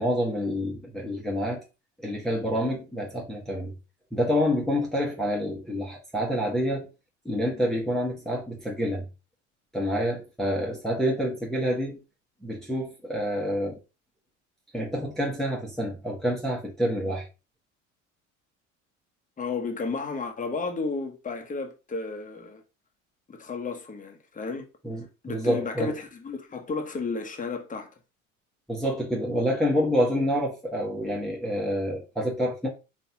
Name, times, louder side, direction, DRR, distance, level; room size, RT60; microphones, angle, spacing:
voice 1, 0.0-1.6 2.0-3.7 4.1-6.9 7.2-9.1 9.7-12.0 12.4-13.8 14.7-17.3 24.8-25.9 28.7-32.7, equal, ahead, 1.2 m, -27 dB
voice 2, 19.4-22.6 23.3-24.7 25.2-27.9, left 4 dB, 20° left, 1.1 m, -32 dB
4.1 x 3.3 x 2.7 m
hypercardioid pair, 70°, 37 cm